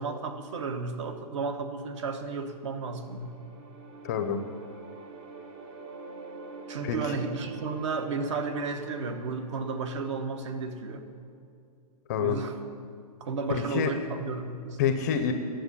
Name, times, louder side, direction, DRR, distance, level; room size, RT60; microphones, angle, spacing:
voice 1, 0.0-3.3 6.7-11.0 12.2-12.6 13.2-14.8, right 4 dB, 45° right, 8 dB, 1.0 m, -33 dB
sound 1, 2.5-11.5, right 3 dB, 20° right, 0.7 m, -46 dB
voice 2, 4.0-4.4 6.8-7.2 12.1-12.4 13.7-13.9 14.8-15.3, left 7 dB, 25° left, 8 dB, 0.6 m, -27 dB
10.5 x 7.6 x 8.3 m, 2.3 s
hypercardioid pair, 165°, 21 cm